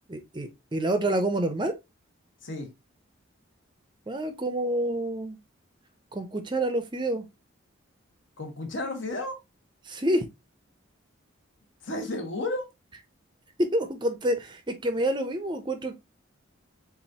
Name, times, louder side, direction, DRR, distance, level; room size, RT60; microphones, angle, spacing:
voice 1, 0.1-1.7 4.1-5.4 6.1-7.3 9.8-10.2 13.6-15.9, right 1 dB, 20° right, 0.5 m, -28 dB
voice 2, 8.4-9.4 11.8-12.7, left 2 dB, 65° left, 1.3 m, -32 dB
7.1 x 2.5 x 2.8 m
head